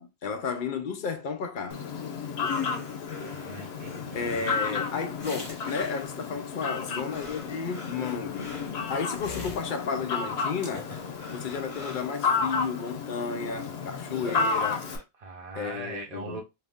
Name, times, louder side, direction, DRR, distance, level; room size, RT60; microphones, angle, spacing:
voice 1, 0.0-1.8 4.1-8.6 8.9-10.9 11.3-14.9 15.6-16.4, left 5 dB, 60° left, 0.7 m, -33 dB
Fowl, 1.7-15.0, left 5 dB, 80° left, 0.9 m, -32 dB
sound 1, 2.4-6.3 6.8-10.1 10.6-12.7 13.6-13.7 13.9-15.0, left 4 dB, 35° left, 1.0 m, -42 dB
voice 2, 3.3-4.5 15.2-16.4, right 3 dB, 40° right, 0.8 m, -40 dB
2.7 x 2.6 x 3.5 m
omnidirectional pair, 1.0 m